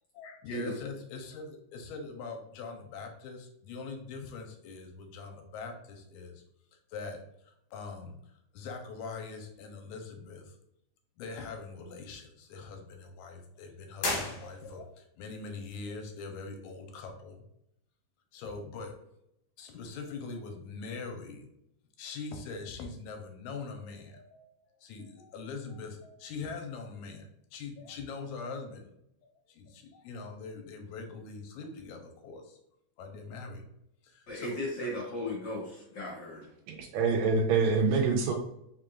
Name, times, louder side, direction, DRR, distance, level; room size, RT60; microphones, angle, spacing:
voice 1, 0.1-6.4 6.7-10.6 11.2-17.4 18.3-19.0 19.6-21.5 22.0-24.5 24.8-28.9 29.2-32.6 33.0-33.7 34.0-34.9, left 4 dB, 85° left, 4 dB, 2.0 m, -42 dB
sound 1, 14.0-15.0, left 2 dB, 65° left, 1.8 m, -34 dB
voice 2, 34.3-36.5, left 1 dB, 50° left, -4 dB, 1.4 m, -36 dB
voice 3, 36.7-38.3, right 4 dB, 80° right, 3 dB, 1.7 m, -26 dB
4.6 x 3.7 x 2.4 m, 0.78 s
omnidirectional pair, 3.4 m